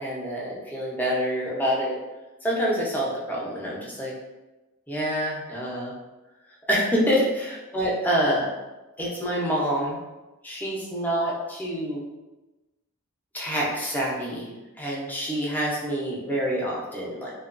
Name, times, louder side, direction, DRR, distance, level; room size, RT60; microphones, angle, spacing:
voice 1, 0.0-2.0 2.4-4.1 4.9-5.9 6.7-8.5 9.0-10.0 10.4-12.0 13.3-14.5 14.8-17.3, equal, 10° left, -4 dB, 0.5 m, -26 dB
2.9 x 2.2 x 2.4 m, 1.1 s
head